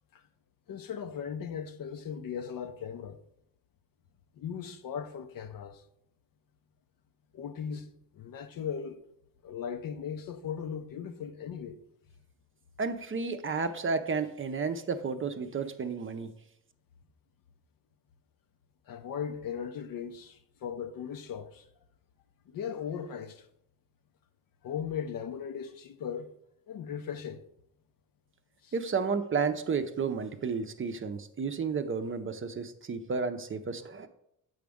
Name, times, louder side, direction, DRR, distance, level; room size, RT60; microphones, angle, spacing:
voice 1, 0.7-3.2 4.3-5.8 7.3-9.0 9.4-11.8 18.9-21.7 22.5-23.5 24.6-26.3 26.7-27.4 28.6-28.7, left 7 dB, 65° left, 0.7 m, -38 dB
voice 2, 12.8-16.3 28.7-34.1, right 5 dB, 35° right, 0.6 m, -32 dB
7.7 x 5.0 x 3.5 m
supercardioid pair, 70°, 37 cm